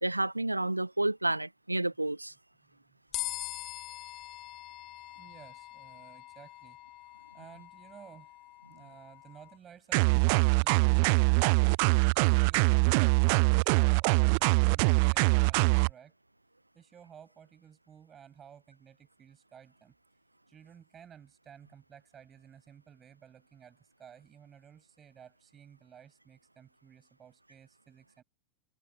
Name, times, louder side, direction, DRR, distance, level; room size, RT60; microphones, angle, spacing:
voice 1, 0.0-2.3, right 2 dB, 85° right, 0.7 m, -30 dB
sound 1, 3.1-9.6, left 17 dB, 35° left, 2.8 m, -43 dB
voice 2, 5.2-6.8 7.3-8.4 8.7-16.2 16.7-19.9 20.5-28.2, right 8 dB, 25° right, 7.0 m, -55 dB
sound 2, 9.9-15.9, right 35 dB, 45° right, 0.3 m, -23 dB
figure-of-eight pair, 90°, 0 cm